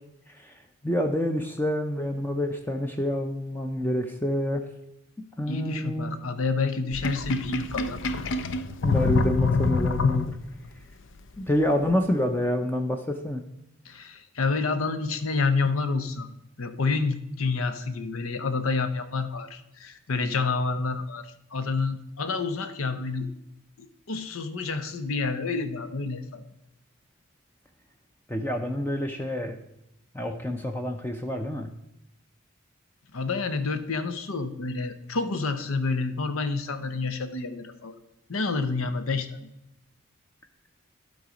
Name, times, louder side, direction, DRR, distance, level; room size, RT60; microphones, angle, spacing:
voice 1, 0.3-4.6 5.4-6.2 8.8-10.4 11.4-13.4 28.3-29.6 30.1-31.7, left 1 dB, 10° left, 4 dB, 0.5 m, -27 dB
voice 2, 5.5-8.0 8.6-8.7 13.8-16.3 16.6-23.3 23.8-26.4 33.1-38.0 38.3-39.3, left 4 dB, 85° left, 10 dB, 0.8 m, -29 dB
Sink (filling or washing), 6.9-10.7, left 4 dB, 60° left, 0.5 m, -26 dB
11.5 x 4.0 x 5.0 m, 0.84 s
head